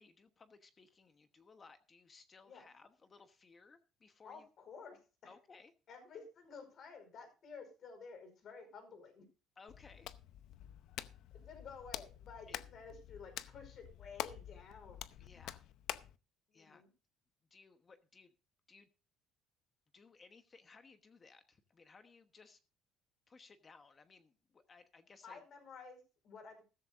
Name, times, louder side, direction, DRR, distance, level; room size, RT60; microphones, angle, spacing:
voice 1, 0.0-4.5 5.2-5.7 9.6-10.1 12.5-12.6 15.2-15.6 16.5-16.8 17.5-18.3 18.7-18.9 19.9-22.6 23.3-25.4, left 4 dB, 25° left, 8 dB, 1.1 m, -61 dB
voice 2, 4.2-5.0 5.9-9.3 11.3-15.0 16.5-16.9 25.2-26.6, left 5 dB, 45° left, 7 dB, 4.9 m, -52 dB
Hands, 9.7-16.2, left 12 dB, 70° left, 0.7 m, -47 dB
15.0 x 13.5 x 2.5 m, 0.32 s
cardioid pair, 140°, 0 cm